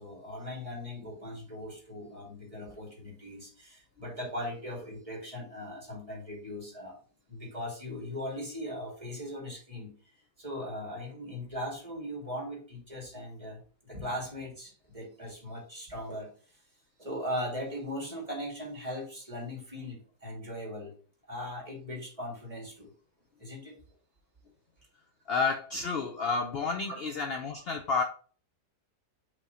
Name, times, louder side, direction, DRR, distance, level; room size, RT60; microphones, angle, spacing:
voice 1, 0.0-7.0 7.3-9.9 10.4-16.6 17.0-20.9 21.2-22.9 23.4-23.8 26.9-27.0, left 1 dB, 20° right, -2 dB, 2.2 m, -39 dB
voice 2, 25.3-28.0, left 4 dB, 70° left, 4 dB, 0.6 m, -30 dB
5.4 x 3.5 x 4.9 m, 0.41 s
omnidirectional pair, 1.8 m